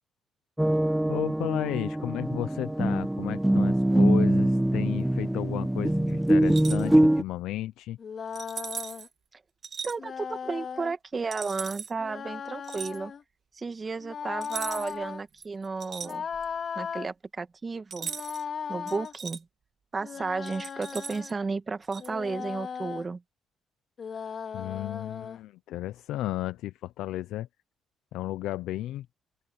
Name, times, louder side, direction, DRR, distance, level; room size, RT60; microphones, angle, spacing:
sound 1, 0.6-7.2, right 1 dB, 5° right, 0.4 m, -23 dB
voice 1, 1.1-8.0 24.5-27.5 28.1-29.1, left 15 dB, 90° left, 0.6 m, -33 dB
sound 2, 6.4-6.9 8.3-9.1 9.6-10.0 11.3-11.9 12.6-13.0 14.4-15.0 15.4-16.6 17.9-18.4 18.9-19.4 20.4-21.3 21.9-22.1, right 6 dB, 50° right, 1.9 m, -39 dB
sound 3, 8.0-9.1 10.0-10.9 12.0-13.2 14.0-15.2 16.0-17.1 18.0-19.1 20.0-21.4 22.0-23.1 24.0-25.4, left 6 dB, 50° left, 3.0 m, -37 dB
voice 2, 9.8-13.1 13.5-16.3 16.8-18.1 18.7-19.4 19.9-23.2, right 4 dB, 30° right, 2.0 m, -33 dB
open air
cardioid pair, 90°, 0 cm